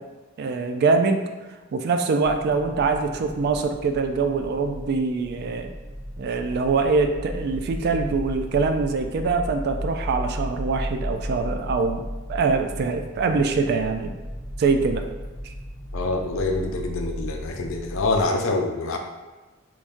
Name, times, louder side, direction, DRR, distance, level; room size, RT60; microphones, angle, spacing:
voice 1, 0.4-1.3 1.7-5.7 6.2-12.0 12.3-14.1 14.6-15.0 15.4-15.5, right 4 dB, 50° right, 6 dB, 0.3 m, -23 dB
sound 1, 2.2-18.2, equal, 85° right, 0.8 m, -35 dB
voice 2, 15.9-19.0, left 2 dB, 70° left, 3 dB, 0.5 m, -25 dB
3.1 x 2.6 x 3.5 m, 1.2 s
head